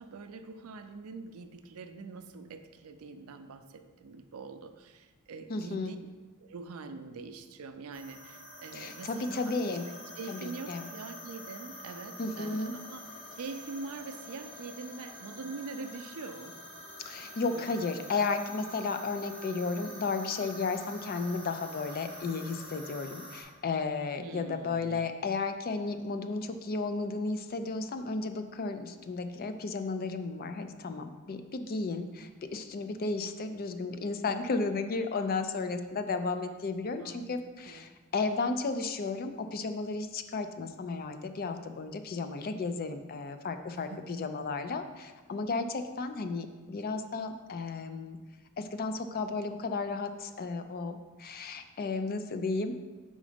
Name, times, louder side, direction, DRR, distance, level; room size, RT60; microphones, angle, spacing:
voice 1, 0.0-6.0 6.4-9.6 10.2-13.0 13.3-16.6 17.5-17.8 24.2-25.1 35.1-35.8 36.9-37.3 37.7-37.9 43.7-44.2, right 4 dB, 75° right, 9 dB, 0.4 m, -44 dB
voice 2, 5.5-5.9 8.7-9.9 10.3-10.8 12.2-12.7 17.1-48.2 48.6-52.7, left 3 dB, 40° left, 8 dB, 0.4 m, -33 dB
sound 1, 7.9-23.4, equal, 25° left, 1.1 m, -47 dB
5.1 x 3.8 x 5.0 m, 1.3 s
head